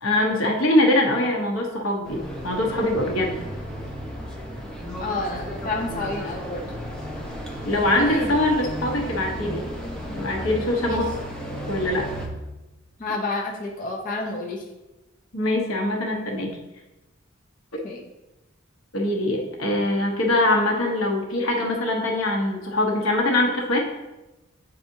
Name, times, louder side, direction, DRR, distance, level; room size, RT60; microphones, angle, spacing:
voice 1, 0.0-3.3 7.6-9.7 10.1-11.1 11.7-12.1 15.3-16.6 18.9-23.9, left 1 dB, 80° left, 1 dB, 1.0 m, -23 dB
sound 1, 2.1-12.3, equal, 5° left, 0.8 m, -34 dB
voice 2, 5.0-6.7 7.7-8.3 10.9-11.0 13.0-14.6 17.8-18.0, left 2 dB, 40° left, -1 dB, 0.7 m, -29 dB
8.5 x 4.1 x 2.7 m, 1.0 s
head